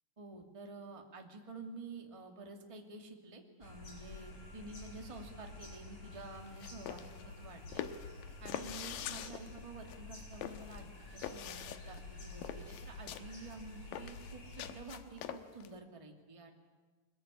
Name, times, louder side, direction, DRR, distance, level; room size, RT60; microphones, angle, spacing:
voice 1, 0.2-7.8 8.4-16.5, right 3 dB, 10° right, 3 dB, 1.9 m, -50 dB
sound 1, 3.6-14.8, left 2 dB, 55° left, 6.2 m, -50 dB
sound 2, 6.4-15.7, left 10 dB, 85° left, 2.8 m, -45 dB
24.0 x 21.5 x 9.9 m, 1.4 s
omnidirectional pair, 4.0 m